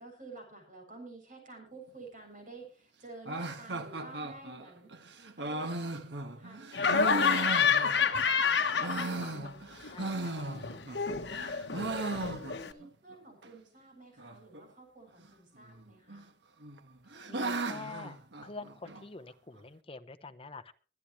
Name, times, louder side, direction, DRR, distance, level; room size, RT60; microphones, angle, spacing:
voice 1, 0.0-4.9 5.4-9.3 11.4-16.3, right 2 dB, 50° right, 3 dB, 7.4 m, -51 dB
sound 1, 3.3-8.3 8.6-11.0 11.3-12.9 13.1-13.2 13.4-13.5 14.2-14.6 15.6-16.2 16.6-19.0, right 2 dB, 80° right, 1.4 m, -37 dB
Laughter, 6.7-9.5 9.8-12.7, left 6 dB, 80° left, 1.1 m, -29 dB
voice 2, 8.6-9.1 9.9-10.4 17.3-20.7, left 3 dB, 30° left, 10 dB, 1.0 m, -47 dB
23.5 x 10.0 x 3.2 m, 0.37 s
head